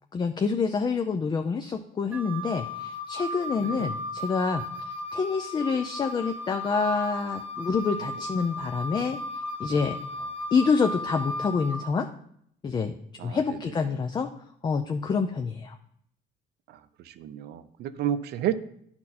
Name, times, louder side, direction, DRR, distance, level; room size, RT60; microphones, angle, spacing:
voice 1, 0.1-9.2 9.6-10.0 10.5-12.1 12.6-12.9 13.2-14.3 14.6-15.8, left 5 dB, 25° left, 7 dB, 0.4 m, -27 dB
Wind instrument woodwind instrument, 2.1-11.8, left 1 dB, 10° right, 0.8 m, -35 dB
voice 2, 17.1-18.5, right 11 dB, 75° right, 13 dB, 0.6 m, -30 dB
10.0 x 4.4 x 4.2 m, 0.69 s
cardioid pair, 110°, 17 cm